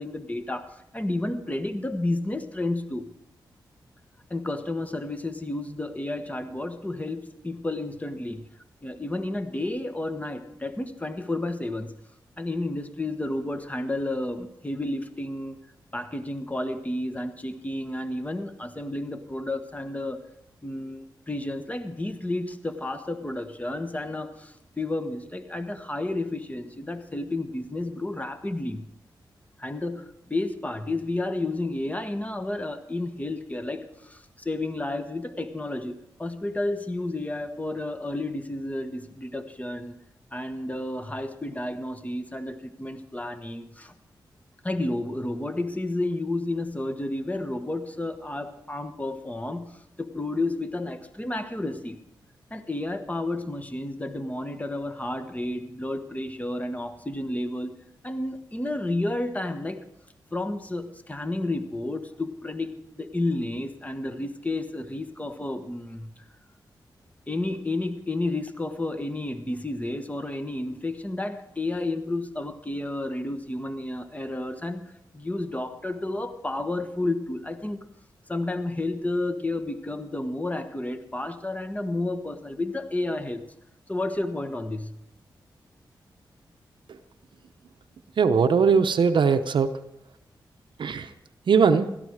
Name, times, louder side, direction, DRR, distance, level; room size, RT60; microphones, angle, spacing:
voice 1, 0.0-3.1 4.3-8.4 8.8-12.0 12.4-15.6 15.9-20.2 20.6-28.9 29.6-35.9 36.2-40.0 40.3-43.9 44.6-52.0 52.5-59.8 60.3-66.1 67.3-77.8 78.3-83.4 83.9-85.0, left 2 dB, 15° left, 9 dB, 1.4 m, -31 dB
voice 2, 88.2-89.7 90.8-91.1 91.5-91.9, right 5 dB, 70° right, 8 dB, 0.8 m, -20 dB
16.5 x 13.0 x 4.9 m, 0.81 s
cardioid pair, 55°, 8 cm